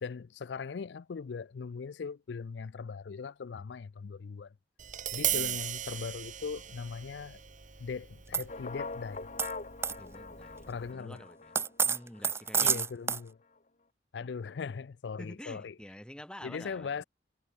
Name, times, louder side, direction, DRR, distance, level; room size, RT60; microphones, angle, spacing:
voice 1, 0.0-4.5 5.1-7.4 7.8-9.3 10.7-11.2 12.6-13.4 14.1-15.8 16.4-17.0, left 5 dB, 65° left, 0.4 m, -39 dB
Tap, 4.8-10.9, right 11 dB, 45° right, 1.8 m, -38 dB
voice 2, 5.2-5.6 10.0-11.5 11.8-12.9 15.2-17.1, equal, 5° left, 1.3 m, -48 dB
sound 1, 8.3-8.4 9.4-9.5 9.8-10.0 11.6-13.2, right 6 dB, 15° right, 0.4 m, -28 dB
sound 2, 8.5-12.7, left 3 dB, 40° left, 1.6 m, -44 dB
head